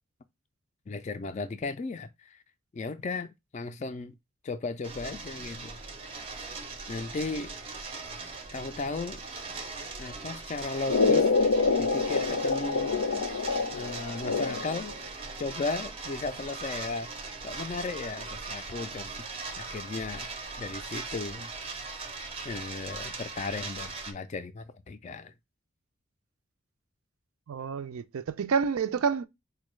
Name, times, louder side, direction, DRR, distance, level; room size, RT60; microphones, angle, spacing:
voice 1, 0.9-2.4 2.7-4.1 4.4-5.8 6.1-6.2 6.9-7.5 8.5-9.2 10.0-11.3 11.8-13.0 13.7-15.0 15.4-20.3 20.6-21.5 22.4-25.3, left 3 dB, 30° left, 0.3 m, -36 dB
sound 1, 4.8-24.1, right 4 dB, 25° right, 0.5 m, -40 dB
sound 2, 10.9-14.9, left 4 dB, 85° left, 0.5 m, -26 dB
voice 2, 27.5-29.3, right 6 dB, 75° right, 0.4 m, -28 dB
4.3 x 2.2 x 3.0 m
head